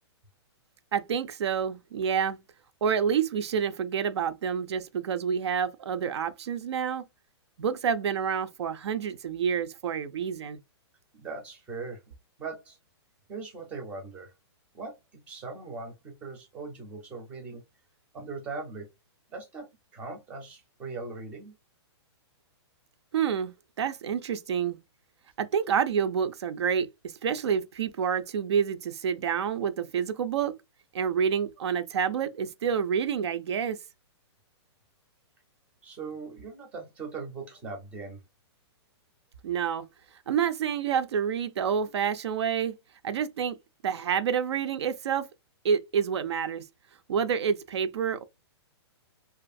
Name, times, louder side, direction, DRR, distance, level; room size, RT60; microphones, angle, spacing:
voice 1, 0.9-2.4 2.8-7.0 7.6-10.6 23.1-24.8 25.4-30.6 30.9-33.8 39.4-39.9 40.3-42.8 43.0-43.6 43.8-45.3 45.6-46.7 47.1-48.2, right 7 dB, 75° right, 0.4 m, -28 dB
voice 2, 11.1-12.0 12.4-12.8 13.3-14.3 14.7-17.6 18.1-18.9 19.3-19.7 19.9-21.6 35.8-38.2, right 4 dB, 10° right, 0.4 m, -40 dB
2.5 x 2.4 x 2.5 m
hypercardioid pair, 175°, 14 cm